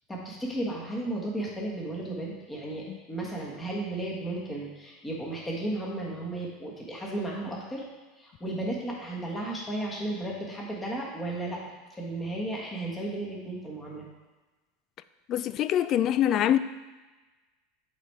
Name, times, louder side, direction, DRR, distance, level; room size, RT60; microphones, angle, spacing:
voice 1, 0.1-7.8 8.2-11.6 11.9-14.0, right 1 dB, 10° left, 1.5 m, -34 dB
voice 2, 15.3-16.6, left 11 dB, 40° left, 0.3 m, -24 dB
8.1 x 4.2 x 4.7 m
supercardioid pair, 135°, 0 cm